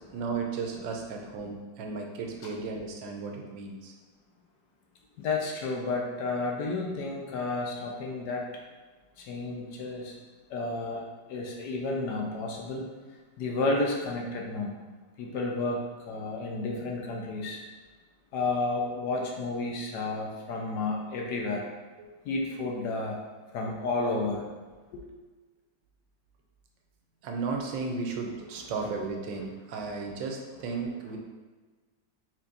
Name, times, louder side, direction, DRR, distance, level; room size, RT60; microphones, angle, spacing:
voice 1, 0.1-3.9 22.0-22.1 27.2-31.2, right 4 dB, 85° right, 2 dB, 1.3 m, -34 dB
voice 2, 5.2-8.5 9.2-10.1 10.5-11.0 11.3-12.9 13.4-14.7 15.2-17.6 18.3-21.7 22.2-23.2 23.5-24.4 24.9-25.0, left 3 dB, 70° left, -1 dB, 1.2 m, -31 dB
4.4 x 3.9 x 2.6 m, 1.3 s
omnidirectional pair, 1.9 m